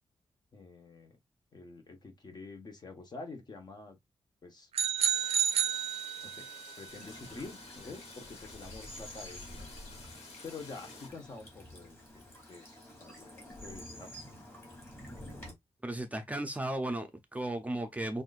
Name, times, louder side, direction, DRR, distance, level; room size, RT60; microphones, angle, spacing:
voice 1, 0.5-1.2 1.5-4.0 4.4-4.7 6.2-6.5 6.8-9.7 10.4-14.1, left 3 dB, 40° left, 1.2 m, -47 dB
sound 1, 4.7-6.6, right 8 dB, 75° right, 0.5 m, -30 dB
sound 2, 5.0-11.1, left 3 dB, 85° left, 1.6 m, -52 dB
Bird vocalization bird call bird song / Stream, 6.9-15.5, left 1 dB, 20° left, 2.5 m, -49 dB
voice 2, 15.8-18.2, right 1 dB, 15° right, 0.6 m, -35 dB
6.0 x 2.6 x 2.5 m
wide cardioid pair, 135°, 10 cm